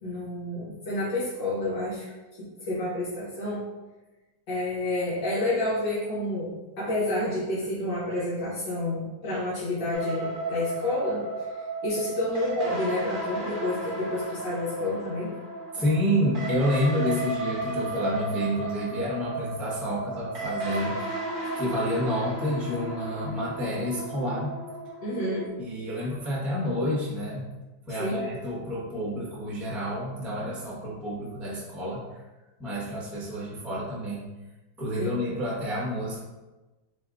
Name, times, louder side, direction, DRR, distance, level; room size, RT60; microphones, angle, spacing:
voice 1, 0.0-3.6 4.5-6.5 6.8-11.2 11.8-15.4 15.7-15.8 25.0-25.5 28.0-28.3 35.0-35.2, left 1 dB, 70° left, -8 dB, 1.9 m, -29 dB
sound 1, 9.9-25.4, right 2 dB, 40° right, 0.8 m, -34 dB
voice 2, 15.7-21.3 21.6-24.5 25.6-27.5 27.9-32.2 32.6-34.3 34.8-36.2, equal, ahead, -6 dB, 0.7 m, -29 dB
7.9 x 2.7 x 2.5 m, 1.1 s
omnidirectional pair, 2.1 m